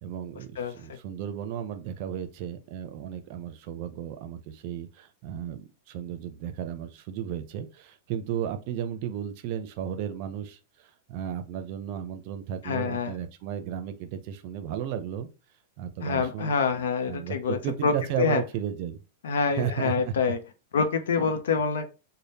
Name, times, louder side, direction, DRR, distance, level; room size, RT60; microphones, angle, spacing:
voice 1, 0.0-15.3 15.8-19.0 19.5-20.1, right 9 dB, 45° right, 0.5 m, -34 dB
voice 2, 0.6-1.0 12.6-13.1 16.0-18.4 19.2-20.4 20.7-21.9, left 5 dB, 85° left, 0.6 m, -26 dB
3.4 x 2.1 x 4.1 m
supercardioid pair, 155°, 0 cm